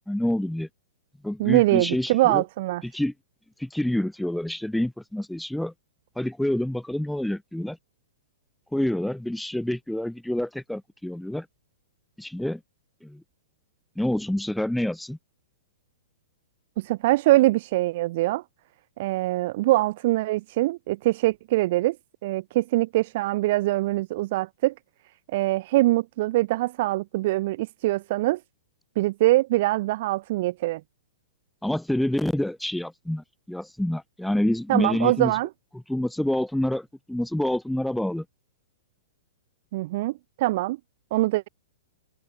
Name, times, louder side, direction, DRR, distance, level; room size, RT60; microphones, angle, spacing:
voice 1, 0.1-0.7 1.2-2.4 2.8-3.1 3.6-5.7 6.2-7.8 8.7-11.5 12.2-12.6 13.0-13.2 14.0-15.2 31.6-35.3 35.9-38.2, left 1 dB, ahead, 2.1 m, -27 dB
voice 2, 1.4-2.8 16.8-18.4 19.0-22.0 22.2-24.7 25.3-28.4 29.0-30.8 34.7-35.5 39.7-40.8 41.1-41.5, right 18 dB, 55° right, 4.1 m, -23 dB
hypercardioid pair, 115°, 0 cm